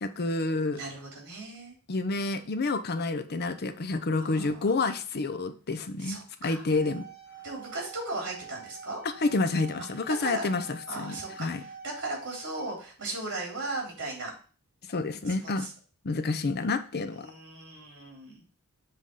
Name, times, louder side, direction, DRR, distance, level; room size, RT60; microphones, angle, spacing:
voice 1, 0.0-0.8 1.9-7.1 9.0-11.6 14.9-15.7 16.0-17.3, left 3 dB, 45° left, 10 dB, 0.6 m, -29 dB
voice 2, 0.7-1.8 4.2-4.7 6.0-6.6 7.4-9.0 10.1-10.5 10.9-14.3 15.3-15.7 17.1-18.4, right 2 dB, 55° right, -2 dB, 3.6 m, -37 dB
sound 1, 6.7-12.7, right 4 dB, 25° left, 1.8 m, -46 dB
7.5 x 3.5 x 5.4 m, 0.40 s
head